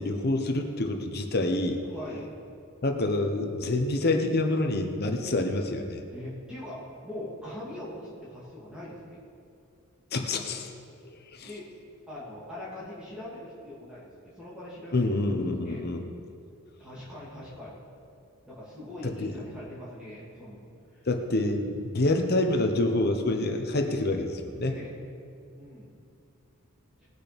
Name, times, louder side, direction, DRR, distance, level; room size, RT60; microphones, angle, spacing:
voice 1, 0.0-1.8 2.8-6.0 10.1-10.7 11.0-11.5 14.9-16.1 19.0-19.3 21.1-24.7, left 2 dB, 45° left, 5 dB, 0.9 m, -27 dB
voice 2, 1.9-2.3 6.1-9.2 11.4-11.6 12.1-14.1 14.4-15.1 15.6-15.8 16.8-17.8 18.4-20.6 20.9-21.1 24.5-25.0 25.6-25.9, left 1 dB, 5° right, -9 dB, 2.6 m, -42 dB
19.5 x 6.6 x 5.3 m, 2.5 s
head